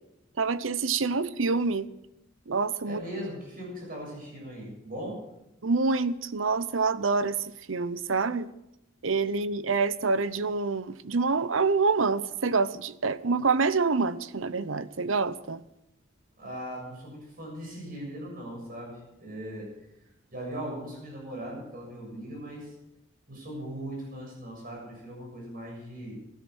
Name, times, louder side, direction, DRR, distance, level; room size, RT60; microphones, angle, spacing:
voice 1, 0.4-1.9 2.5-3.0 5.6-8.5 9.0-15.6, right 4 dB, 75° right, 16 dB, 0.7 m, -26 dB
voice 2, 2.8-5.3 16.4-22.7 23.3-26.2, equal, 45° right, -1 dB, 7.3 m, -39 dB
16.5 x 13.0 x 6.3 m, 0.86 s
head